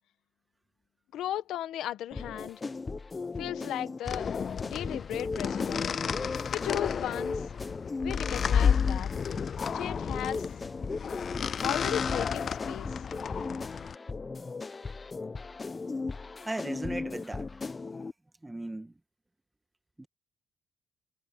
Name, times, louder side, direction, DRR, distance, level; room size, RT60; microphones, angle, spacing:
voice 1, 1.1-2.6 3.4-4.3 4.6-6.0 6.5-7.4 8.0-9.1 9.7-10.4 11.6-12.9, left 12 dB, 80° left, 1.5 m, -36 dB
sound 1, 2.1-18.1, left 3 dB, 30° left, 1.0 m, -37 dB
sound 2, 4.1-13.9, left 7 dB, 50° left, 0.4 m, -32 dB
voice 2, 16.4-17.5 18.4-19.0 20.0-20.1, right 2 dB, 15° right, 1.7 m, -37 dB
cardioid pair, 90°, 0 cm